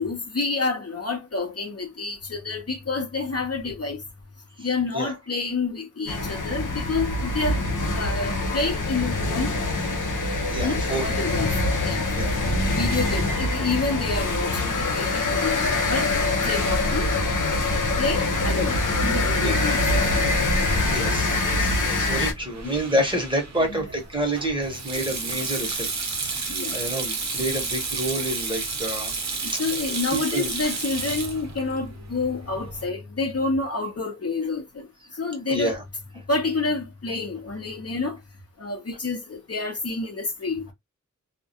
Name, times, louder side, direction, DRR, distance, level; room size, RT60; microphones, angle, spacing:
voice 1, 0.0-4.0 4.6-7.6 7.9-9.5 10.6-11.5 11.8-12.0 12.7-16.1 16.4-17.1 18.0-20.0 22.6-22.7 26.5-26.8 29.6-34.9 35.2-35.8 36.3-38.2 38.6-40.7, left 3 dB, 50° left, 0.7 m, -28 dB
sound 1, 6.1-22.3, left 2 dB, 90° left, 0.6 m, -24 dB
voice 2, 10.5-11.2 12.1-12.4 15.1-15.2 19.4-19.5 20.9-25.9 26.2-29.1 29.4-29.6 30.1-30.5 35.5-35.8, right 1 dB, 15° right, 0.9 m, -28 dB
Sink (filling or washing), 19.2-32.9, right 4 dB, 60° right, 0.6 m, -32 dB
2.3 x 2.1 x 2.6 m
wide cardioid pair, 50°, 31 cm